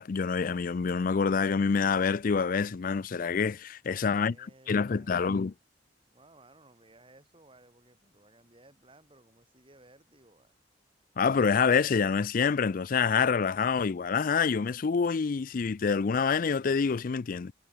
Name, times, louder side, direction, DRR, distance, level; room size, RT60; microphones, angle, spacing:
voice 1, 0.0-4.4 4.7-5.5 11.2-17.5, left 5 dB, 45° left, 0.4 m, -26 dB
voice 2, 3.8-5.4 6.1-10.5, right 2 dB, 30° right, 6.0 m, -59 dB
head